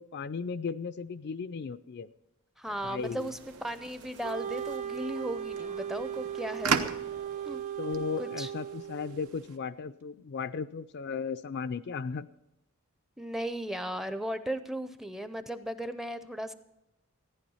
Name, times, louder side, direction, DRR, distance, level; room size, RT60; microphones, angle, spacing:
voice 1, 0.0-2.1 2.8-3.3 7.8-12.3, left 5 dB, 50° left, 12 dB, 0.4 m, -36 dB
voice 2, 2.6-6.9 7.4-7.6 8.2-8.5 13.2-16.6, right 1 dB, ahead, 11 dB, 0.5 m, -36 dB
sound 1, 2.6-7.7, right 3 dB, 55° right, 1.1 m, -53 dB
sound 2, 3.0-9.6, right 5 dB, 85° right, 0.9 m, -38 dB
Wind instrument woodwind instrument, 4.2-9.3, right 9 dB, 35° right, 0.9 m, -37 dB
14.5 x 10.0 x 5.5 m, 0.88 s
head